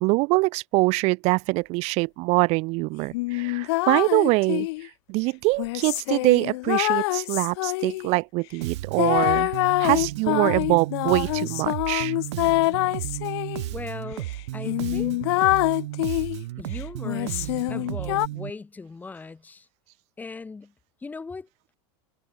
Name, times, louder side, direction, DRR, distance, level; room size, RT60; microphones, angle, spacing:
voice 1, 0.0-4.7 5.1-9.5 9.8-12.1, right 26 dB, 50° right, 0.6 m, -23 dB
sound 1, 3.1-4.9 5.6-8.1 9.0-13.6 14.2-14.3 14.7-16.4 17.0-18.3, left 22 dB, 75° left, 0.7 m, -25 dB
Bass guitar, 8.6-18.5, right 17 dB, 90° right, 0.8 m, -34 dB
voice 2, 13.7-15.2 16.6-19.7 20.2-20.7 21.0-21.5, left 4 dB, 10° left, 1.3 m, -39 dB
supercardioid pair, 140°, 14 cm